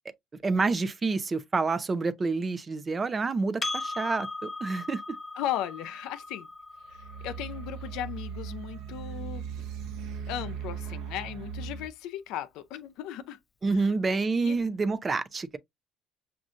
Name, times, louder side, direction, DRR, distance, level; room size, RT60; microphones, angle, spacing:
voice 1, 0.4-5.0 13.6-15.6, right 3 dB, 30° right, 0.5 m, -28 dB
Percussion, 3.6-8.4, left 3 dB, 25° left, 0.5 m, -38 dB
voice 2, 5.4-6.5 7.2-9.6 10.3-13.4 13.7-13.9 14.4-14.6, left 11 dB, 80° left, 0.5 m, -36 dB
sound 1, 6.9-11.9, right 7 dB, 80° right, 0.9 m, -38 dB
6.1 x 2.5 x 2.5 m
supercardioid pair, 90°, 0 cm